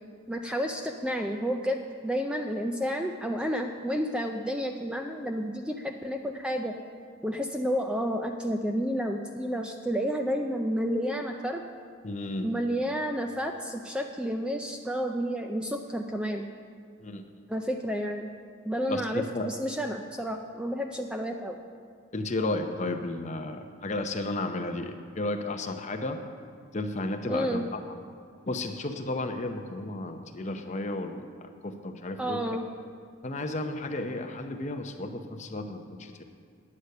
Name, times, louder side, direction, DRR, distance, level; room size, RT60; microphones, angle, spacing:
voice 1, 0.3-6.7 7.2-11.6 12.4-16.5 17.5-18.3 18.6-21.6 27.3-27.6 32.2-32.7, equal, 5° right, 3 dB, 0.3 m, -30 dB
voice 2, 12.0-12.5 17.0-17.2 18.9-19.5 22.1-26.2 26.7-27.8 28.5-32.6 33.2-36.2, left 2 dB, 35° left, 6 dB, 0.6 m, -33 dB
9.6 x 8.1 x 6.6 m, 2.1 s
head